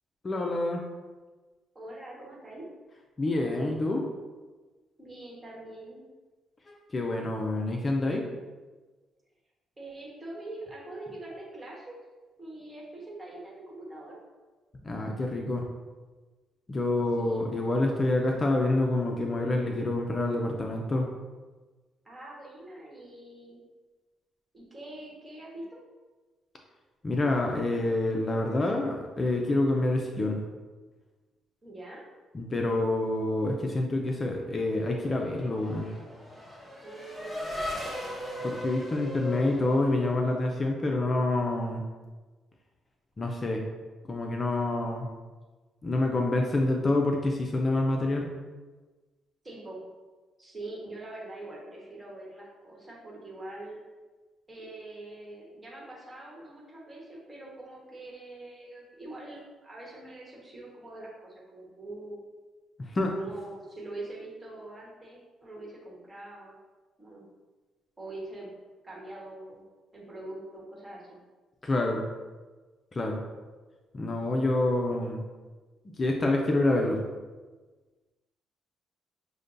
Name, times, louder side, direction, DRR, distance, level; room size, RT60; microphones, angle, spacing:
voice 1, 0.2-0.8 3.2-4.0 6.7-8.2 14.8-15.6 16.7-21.1 27.0-30.4 32.3-35.9 38.4-41.8 43.2-43.6 44.1-45.1 45.8-48.3 62.8-63.1 71.6-72.0 72.9-73.2 73.9-75.2 76.0-77.0, left 2 dB, 30° left, 1 dB, 0.4 m, -27 dB
voice 2, 1.7-2.6 5.0-6.0 9.8-12.0 12.4-14.2 17.2-17.5 22.0-23.6 24.5-25.8 31.6-32.0 36.8-38.1 49.4-49.8 50.4-53.8 54.5-62.2 63.1-66.6 67.0-67.2 68.0-68.5 68.8-69.7 69.9-71.2, right 2 dB, 25° right, -4 dB, 1.2 m, -44 dB
Race car auto racing / Accelerating revving vroom, 34.6-40.6, left 1 dB, 10° left, 1.1 m, -38 dB
6.3 x 2.2 x 2.6 m, 1.3 s
cardioid pair, 90°, 0 cm